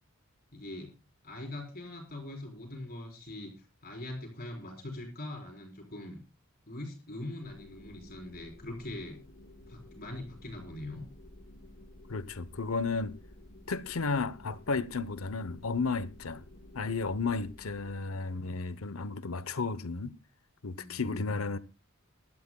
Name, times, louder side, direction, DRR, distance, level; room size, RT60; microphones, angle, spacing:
voice 1, 0.5-1.0 1.2-3.5 3.8-6.2 6.7-9.2 9.7-11.0 20.7-21.5, left 1 dB, 45° left, 4.3 m, -42 dB
sound 1, 7.4-18.0, left 1 dB, 65° left, 1.8 m, -53 dB
voice 2, 12.1-13.2 13.7-16.4 16.7-20.2 20.6-21.6, left 4 dB, 85° left, 0.8 m, -33 dB
23.0 x 12.0 x 2.3 m
head